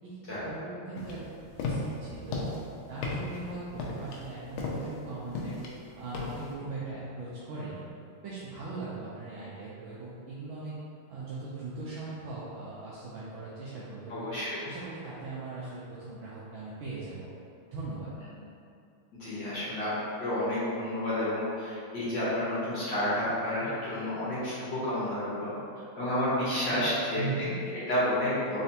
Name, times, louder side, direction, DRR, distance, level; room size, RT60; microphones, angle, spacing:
voice 1, 0.0-2.6 2.9-5.6 6.0-7.8 8.2-10.7 11.1-14.3 14.6-17.3 17.7-18.1 27.2-27.6, right 3 dB, 75° right, -8 dB, 1.4 m, -39 dB
sound 1, 1.0-6.5, left 2 dB, 80° left, 1.4 m, -36 dB
voice 2, 14.1-14.6 19.2-19.9 20.2-25.5 25.9-27.2 27.7-28.6, left 1 dB, 60° left, -10 dB, 1.7 m, -30 dB
4.1 x 3.3 x 2.8 m, 2.5 s
omnidirectional pair, 2.3 m